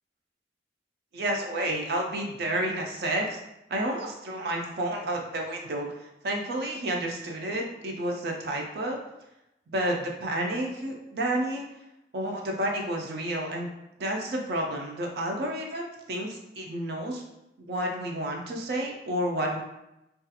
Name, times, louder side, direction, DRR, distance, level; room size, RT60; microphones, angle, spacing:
voice 1, 1.1-3.4 3.7-5.9 6.2-9.0 9.7-11.6 12.1-13.7 14.0-17.2 17.6-19.6, right 1 dB, 65° right, 1 dB, 0.4 m, -30 dB
2.3 x 2.3 x 2.7 m, 0.87 s
head